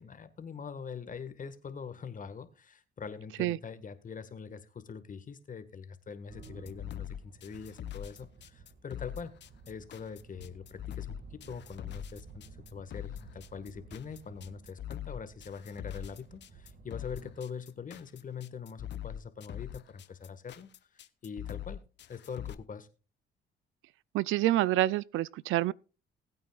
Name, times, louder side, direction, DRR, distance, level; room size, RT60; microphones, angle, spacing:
voice 1, 0.0-9.3 9.7-21.8 22.1-22.9, left 6 dB, 40° left, 1.6 m, -43 dB
sound 1, 6.3-17.3, right 4 dB, 50° right, 2.0 m, -53 dB
sound 2, 6.4-22.5, left 11 dB, 60° left, 0.9 m, -43 dB
voice 2, 24.1-25.7, right 15 dB, 85° right, 0.5 m, -27 dB
19.5 x 8.8 x 2.4 m
cardioid pair, 90°, 20 cm